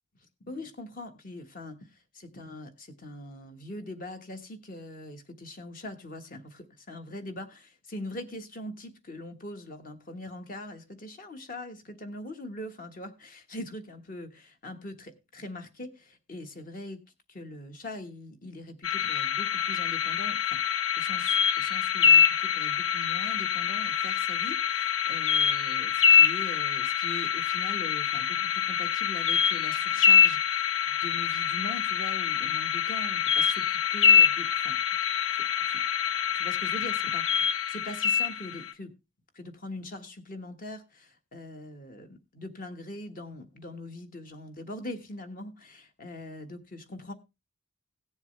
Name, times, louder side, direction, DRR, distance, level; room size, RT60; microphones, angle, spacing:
voice 1, 0.4-17.0 17.3-20.6 21.0-34.8 35.3-35.8 36.3-38.9 39.3-47.1, left 1 dB, 40° left, 1.3 m, -42 dB
sound 1, 18.8-38.7, left 8 dB, 65° left, 0.9 m, -25 dB
16.5 x 7.2 x 3.2 m
head